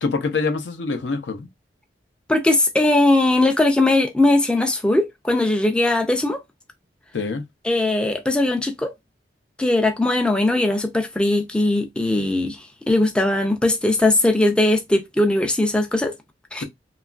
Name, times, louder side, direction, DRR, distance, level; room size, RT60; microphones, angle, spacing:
voice 1, 0.0-1.5 7.1-7.4, left 4 dB, 75° left, 0.5 m, -25 dB
voice 2, 2.3-6.4 7.6-8.9 9.6-16.1 16.5-16.6, left 2 dB, 5° left, 0.3 m, -19 dB
2.9 x 2.3 x 2.3 m
head